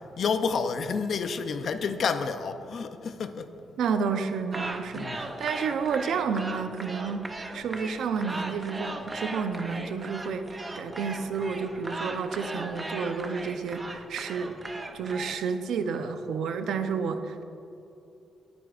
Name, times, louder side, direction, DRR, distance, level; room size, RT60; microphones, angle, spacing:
voice 1, 0.2-3.6 4.9-5.2, left 5 dB, 50° left, 9 dB, 0.6 m, -29 dB
voice 2, 3.8-7.3 7.5-14.6 14.9-17.4, right 5 dB, 85° right, 8 dB, 0.7 m, -30 dB
sound 1, 4.5-15.4, right 2 dB, 15° right, 0.7 m, -38 dB
18.0 x 9.3 x 2.5 m, 2.9 s
cardioid pair, 150°, 0 cm